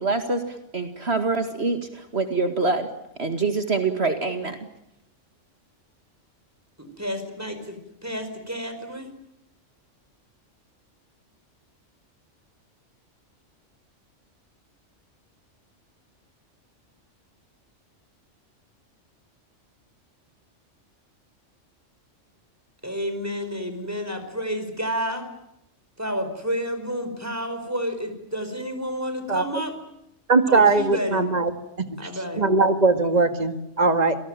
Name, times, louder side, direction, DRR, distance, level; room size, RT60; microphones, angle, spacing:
voice 1, 0.0-2.9 3.2-4.6, right 3 dB, 55° right, 7 dB, 2.4 m, -25 dB
voice 2, 6.8-9.1 22.8-25.3 26.0-29.7 30.5-31.2 32.0-32.5, equal, 10° right, 8 dB, 4.9 m, -30 dB
voice 3, 30.3-31.5 32.4-34.2, right 3 dB, 35° right, 8 dB, 2.0 m, -20 dB
27.0 x 19.0 x 9.0 m, 0.85 s
omnidirectional pair, 1.3 m